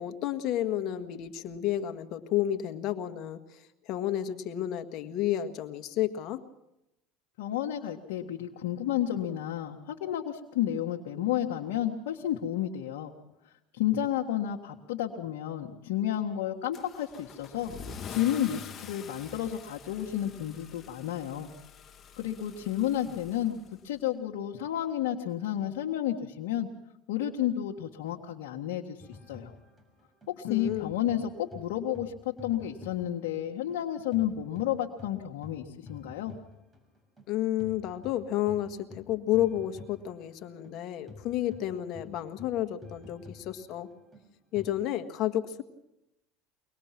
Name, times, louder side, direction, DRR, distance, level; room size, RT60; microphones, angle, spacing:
voice 1, 0.0-6.4 30.5-30.9 37.3-43.9 44.5-45.6, left 12 dB, 55° left, 9 dB, 1.8 m, -31 dB
voice 2, 7.4-13.1 13.7-17.7 18.1-21.5 22.1-23.6 23.8-26.7 27.1-29.5 30.3-36.3, left 11 dB, 80° left, 0 dB, 1.7 m, -31 dB
Car / Engine starting / Accelerating revving vroom, 16.7-24.1, left 7 dB, 35° left, 1.8 m, -46 dB
sound 1, 29.0-33.8 34.1-44.7, left 3 dB, 15° right, 6.1 m, -50 dB
24.0 x 19.5 x 6.0 m, 0.87 s
supercardioid pair, 100°, 0 cm